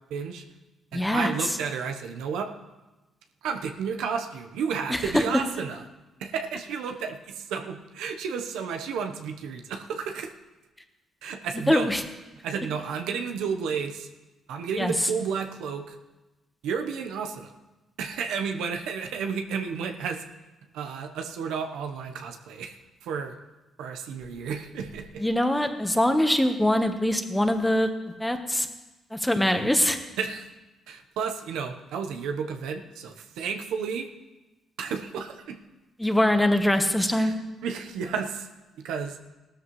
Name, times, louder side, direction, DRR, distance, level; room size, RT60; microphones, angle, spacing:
voice 1, 0.1-0.4 0.9-2.5 3.4-5.8 6.2-10.3 11.2-11.9 12.4-14.1 14.5-16.0 16.6-17.5 18.0-20.2 20.7-23.4 23.8-25.2 30.2-30.5 30.9-34.1 34.8-35.6 37.2-37.3 37.6-38.5 38.8-39.2, right 6 dB, 90° right, 4 dB, 1.0 m, -32 dB
voice 2, 0.9-1.6 4.9-5.2 11.5-12.0 14.8-14.9 25.2-27.9 28.2-28.7 29.1-30.0 36.0-37.3, left 1 dB, 5° left, 6 dB, 1.2 m, -23 dB
16.5 x 13.0 x 3.2 m, 1.1 s
cardioid pair, 90°, 0 cm